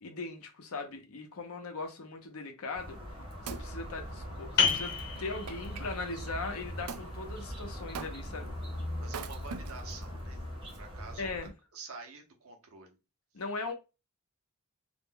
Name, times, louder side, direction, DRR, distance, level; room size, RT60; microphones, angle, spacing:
voice 1, 0.0-3.0 3.4-4.9 5.2-8.5 11.2-11.5 13.3-13.7, left 3 dB, 70° left, 0.7 m, -39 dB
sound 1, 2.7-11.5, equal, 25° right, 0.7 m, -41 dB
Wood, 3.0-5.9 6.9-7.1 7.9-8.5 9.0-10.0 10.7-10.8, right 6 dB, 85° right, 0.4 m, -44 dB
sound 2, 4.6-9.9, left 6 dB, 45° left, 1.0 m, -35 dB
voice 2, 9.0-10.4 10.8-11.3 11.7-13.0, right 4 dB, 65° right, 0.8 m, -47 dB
2.5 x 2.1 x 3.6 m
head